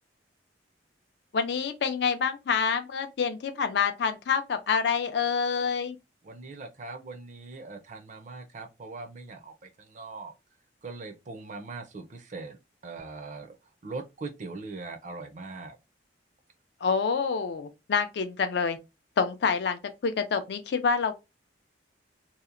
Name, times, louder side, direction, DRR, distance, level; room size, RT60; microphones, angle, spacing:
voice 1, 1.3-6.0 16.8-18.8 19.2-21.1, left 6 dB, 60° left, 0.4 m, -27 dB
voice 2, 6.2-10.3 10.8-13.6 13.8-15.8, right 3 dB, 40° right, 0.4 m, -41 dB
2.8 x 2.0 x 2.4 m
head